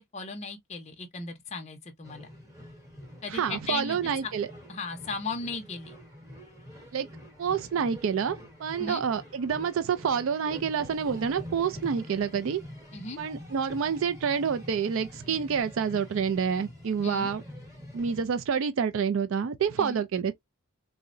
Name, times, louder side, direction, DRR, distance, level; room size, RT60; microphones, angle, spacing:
voice 1, 0.1-2.3 3.2-4.3 4.7-6.0 8.8-9.0 12.9-13.2 17.0-17.3 19.8-20.0, left 3 dB, 30° left, 0.5 m, -36 dB
sound 1, 2.0-18.2, left 1 dB, 15° right, 1.0 m, -46 dB
voice 2, 3.3-4.5 6.9-7.1 7.4-12.6 13.2-17.4 17.9-20.3, right 7 dB, 60° right, 0.3 m, -28 dB
3.6 x 2.1 x 2.4 m
head